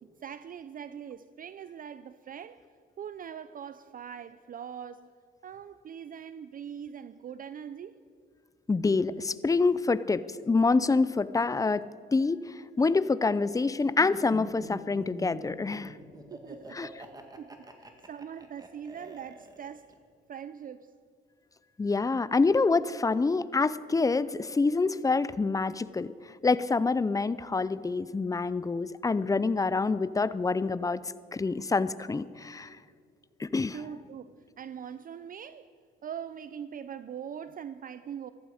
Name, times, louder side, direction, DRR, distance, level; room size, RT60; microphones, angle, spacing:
voice 1, 0.0-2.6 3.0-5.1 5.4-8.0 16.3-17.1 17.4-19.9 20.3-20.9 33.7-35.7 36.0-38.3, right 8 dB, 45° right, 13 dB, 0.5 m, -42 dB
voice 2, 8.7-11.8 12.1-15.9 16.7-16.9 21.8-26.1 26.4-31.0 31.3-32.8 33.4-33.8, left 3 dB, 15° left, 16 dB, 0.5 m, -26 dB
Laughter, 14.0-19.9, right 2 dB, 20° right, 1.9 m, -45 dB
14.5 x 14.0 x 5.0 m, 2.2 s
cardioid pair, 90°, 20 cm